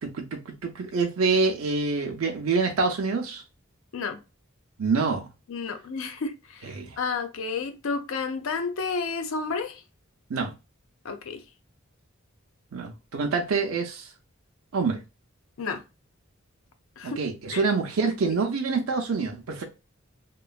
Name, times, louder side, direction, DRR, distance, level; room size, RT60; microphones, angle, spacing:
voice 1, 0.0-3.4 4.8-5.3 6.6-7.0 10.3-10.5 12.7-14.1 14.7-15.0 17.0-19.6, right 4 dB, 80° right, 0.5 m, -26 dB
voice 2, 5.5-9.8 11.0-11.4 15.6-15.8 17.0-17.2 17.5-17.7 18.0-18.1, left 4 dB, 70° left, 0.5 m, -31 dB
2.9 x 2.2 x 2.3 m
head